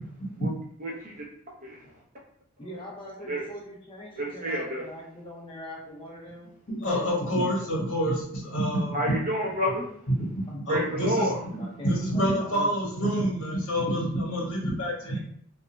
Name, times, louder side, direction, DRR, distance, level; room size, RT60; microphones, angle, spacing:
voice 1, 0.8-1.2 1.6-1.9 3.3-3.4 4.2-4.8 8.9-9.9 10.7-11.4, equal, 35° right, -3 dB, 0.7 m, -29 dB
voice 2, 2.6-6.5 6.8-7.7 10.5-12.8, left 1 dB, 20° left, -3 dB, 0.5 m, -42 dB
voice 3, 6.7-9.0 10.1-11.3 11.8-15.2, equal, 60° left, -4 dB, 1.2 m, -27 dB
2.4 x 2.1 x 3.0 m, 0.66 s
head